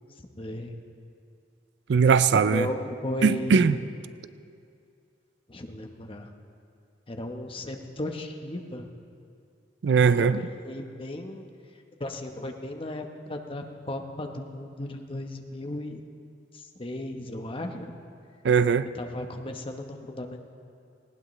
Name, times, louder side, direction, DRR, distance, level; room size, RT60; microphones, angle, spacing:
voice 1, 0.4-0.8 2.3-3.9 5.5-6.3 7.1-8.9 10.2-11.4 12.0-16.0 16.5-17.9 18.9-20.5, left 1 dB, 30° left, 4 dB, 1.0 m, -35 dB
voice 2, 1.9-2.7 3.2-3.7 9.8-10.4 18.4-18.9, right 6 dB, 65° right, 14 dB, 0.4 m, -20 dB
19.0 x 18.0 x 3.2 m, 2.4 s
head